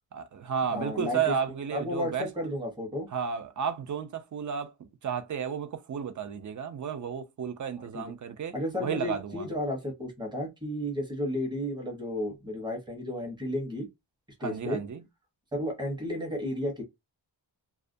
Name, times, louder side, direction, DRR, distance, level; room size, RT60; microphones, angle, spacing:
voice 1, 0.1-2.3 3.1-4.7 5.0-9.4 14.4-15.0, right 7 dB, 45° right, 0.4 m, -32 dB
voice 2, 0.7-1.3 1.7-3.1 7.9-8.0 8.5-13.9 14.4-14.8 15.5-16.8, left 1 dB, 10° right, 0.8 m, -33 dB
2.4 x 2.1 x 2.5 m
wide cardioid pair, 125°, 46 cm